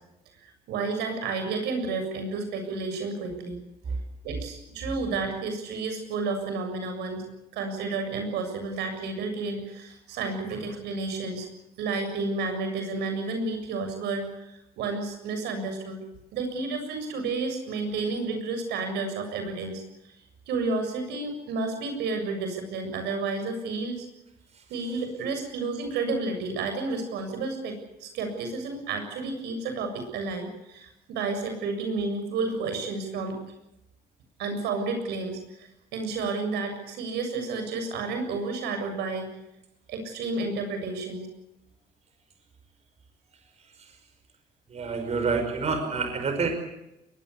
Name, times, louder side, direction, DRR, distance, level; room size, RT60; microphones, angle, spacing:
voice 1, 0.4-3.6 4.2-7.3 7.5-11.5 11.8-16.0 16.3-19.8 20.5-24.1 24.7-33.4 34.4-39.3 39.9-41.3, right 3 dB, 80° right, 6 dB, 7.4 m, -31 dB
voice 2, 44.7-46.5, right 4 dB, 40° right, 6 dB, 5.5 m, -27 dB
22.5 x 21.5 x 8.5 m, 0.90 s
cardioid pair, 110°, 17 cm